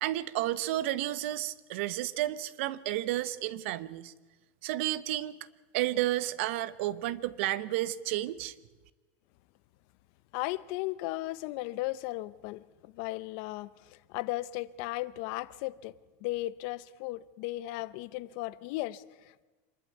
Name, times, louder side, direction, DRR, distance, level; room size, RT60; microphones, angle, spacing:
voice 1, 0.0-4.1 4.6-5.4 5.7-8.5, right 15 dB, 70° right, 0.9 m, -31 dB
voice 2, 10.3-15.9 16.2-19.4, left 18 dB, 55° left, 0.7 m, -36 dB
26.0 x 12.0 x 9.3 m
supercardioid pair, 165°, 7 cm